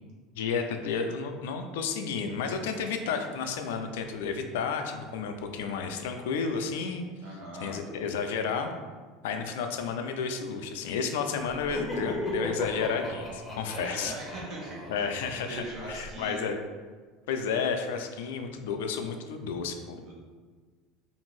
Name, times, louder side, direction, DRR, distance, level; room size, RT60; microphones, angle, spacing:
voice 1, 0.3-7.1 7.6-8.7 9.2-14.1 14.9-16.6 17.3-20.2, left 5 dB, 90° left, 5 dB, 0.3 m, -32 dB
voice 2, 7.2-7.8 13.7-15.1 15.5-16.5 20.0-20.2, right 2 dB, 50° right, -3 dB, 0.9 m, -40 dB
Laughter, 11.5-16.1, left 1 dB, 15° left, 0.7 m, -36 dB
2.5 x 2.5 x 3.1 m, 1.4 s
supercardioid pair, 125°, 0 cm